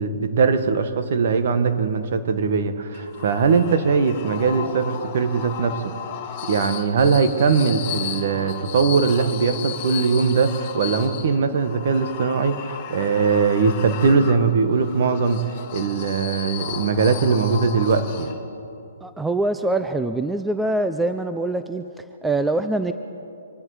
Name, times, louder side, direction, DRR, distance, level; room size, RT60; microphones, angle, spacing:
voice 1, 0.0-5.9 6.4-15.4 15.7-18.3, right 5 dB, 55° right, 9 dB, 1.4 m, -20 dB
sound 1, 2.9-18.7, left 9 dB, 35° left, 1.5 m, -35 dB
voice 2, 19.0-22.9, right 2 dB, 5° right, 9 dB, 0.5 m, -24 dB
25.5 x 10.5 x 5.0 m, 2.6 s
hypercardioid pair, 145°, 0 cm